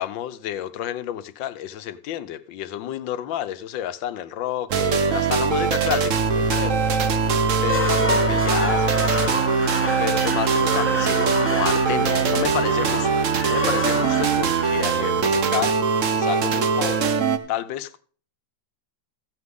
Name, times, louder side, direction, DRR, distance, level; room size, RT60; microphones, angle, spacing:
voice 1, 0.0-6.9 7.6-13.1 13.4-15.8 16.1-17.1 17.5-18.0, left 11 dB, 90° left, 1.5 m, -30 dB
sound 1, 4.7-17.4, right 5 dB, 50° right, 1.1 m, -21 dB
sound 2, 7.5-15.6, left 1 dB, 10° left, 1.0 m, -29 dB
14.5 x 9.7 x 3.7 m
omnidirectional pair, 2.0 m